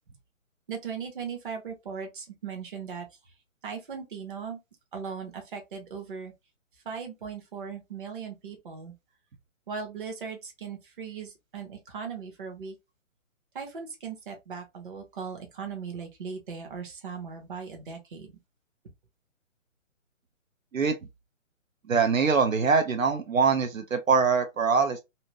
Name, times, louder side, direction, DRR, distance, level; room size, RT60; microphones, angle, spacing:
voice 1, 0.7-3.3 3.6-4.6 4.9-6.3 6.8-8.9 9.7-12.8 13.5-18.3, right 6 dB, 40° right, 1.0 m, -38 dB
voice 2, 21.9-25.0, right 5 dB, 80° right, 0.7 m, -23 dB
2.8 x 2.7 x 2.8 m
figure-of-eight pair, 140°, 40 cm